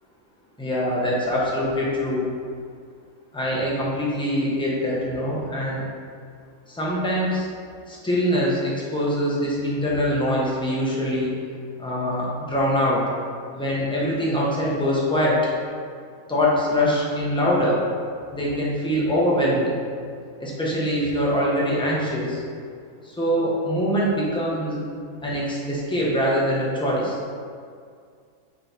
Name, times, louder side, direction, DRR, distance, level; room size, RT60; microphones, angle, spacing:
voice 1, 0.6-2.3 3.3-5.8 6.7-7.4 7.9-11.3 11.8-13.0 13.5-15.4 16.3-17.8 18.3-19.7 20.4-22.4 23.2-24.8 25.2-27.2, equal, 5° left, -6 dB, 1.1 m, -23 dB
6.4 x 4.0 x 4.4 m, 2.2 s
omnidirectional pair, 1.5 m